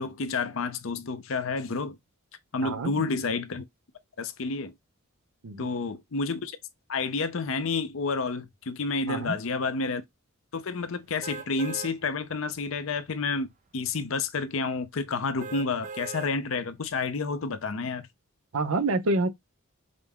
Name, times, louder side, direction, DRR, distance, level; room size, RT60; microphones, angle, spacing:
voice 1, 0.0-2.0 2.5-3.6 4.2-4.7 5.6-6.6 6.9-10.0 10.5-13.5 13.7-18.1, left 4 dB, 65° left, 0.6 m, -30 dB
voice 2, 2.6-2.9 5.4-5.7 9.1-9.4 18.5-19.3, right 2 dB, 85° right, 0.7 m, -27 dB
sound 1, 11.2-11.9 12.5-12.6 15.4-16.3 16.9-17.0, right 5 dB, 35° right, 0.4 m, -39 dB
5.2 x 2.1 x 3.5 m
head